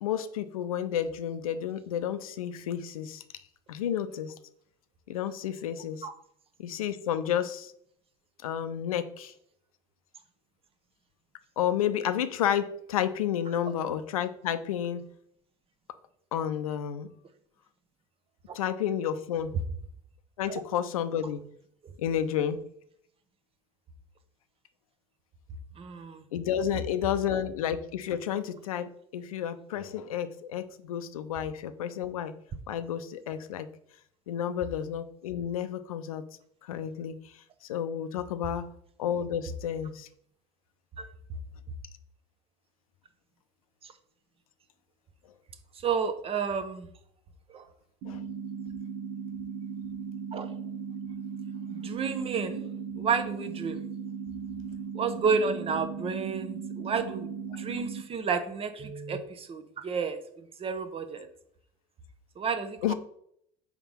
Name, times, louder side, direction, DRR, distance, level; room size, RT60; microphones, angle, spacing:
voice 1, 0.0-3.2 3.7-4.3 5.1-6.1 6.6-7.7 8.4-9.3 11.6-15.0 16.3-17.1 18.5-19.6 20.4-21.4 22.0-22.6 26.3-32.3 32.7-33.7 34.3-36.2 36.6-37.2 37.7-38.7 39.0-40.1 48.1-48.2 62.8-62.9, left 9 dB, 80° left, 11 dB, 0.5 m, -31 dB
voice 2, 25.7-26.2 41.0-41.1 43.8-43.9 45.7-46.9 47.5-47.7 50.3-50.5 51.7-52.7 53.0-53.8 54.9-61.3 62.4-62.9, right 5 dB, 30° right, 9 dB, 0.8 m, -31 dB
sound 1, 48.0-58.0, right 6 dB, 65° right, 0.8 m, -37 dB
4.8 x 3.6 x 5.5 m, 0.69 s
hypercardioid pair, 70°, 18 cm